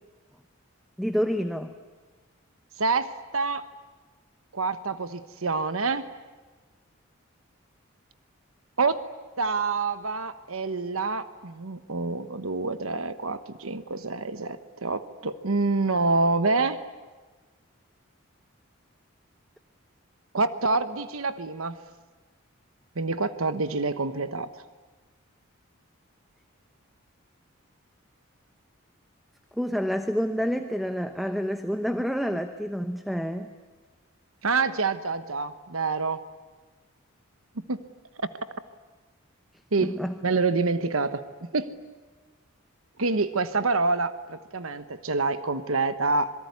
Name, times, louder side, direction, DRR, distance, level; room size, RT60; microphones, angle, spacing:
voice 1, 1.0-1.8 29.6-33.5 39.8-40.1, equal, ahead, 8 dB, 1.0 m, -28 dB
voice 2, 2.8-3.6 4.5-6.1 8.8-9.0 9.4-16.8 20.3-21.8 23.0-24.5 34.4-36.2 37.7-37.8 38.2-38.3 39.7-41.7 43.0-46.3, right 3 dB, 80° right, 11 dB, 1.1 m, -27 dB
26.0 x 23.0 x 9.5 m, 1.3 s
head